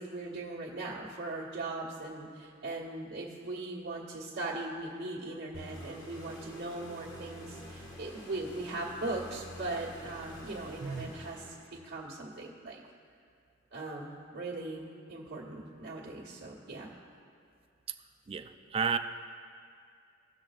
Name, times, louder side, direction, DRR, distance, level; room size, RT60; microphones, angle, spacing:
voice 1, 0.0-11.4 11.7-12.8 13.7-16.9, right 2 dB, 55° right, -7 dB, 1.4 m, -39 dB
sound 1, 5.5-12.0, equal, 75° left, 1.9 m, -48 dB
voice 2, 10.8-11.1 18.3-19.0, right 6 dB, 30° right, 8 dB, 0.3 m, -32 dB
17.0 x 6.2 x 2.4 m, 2.3 s
head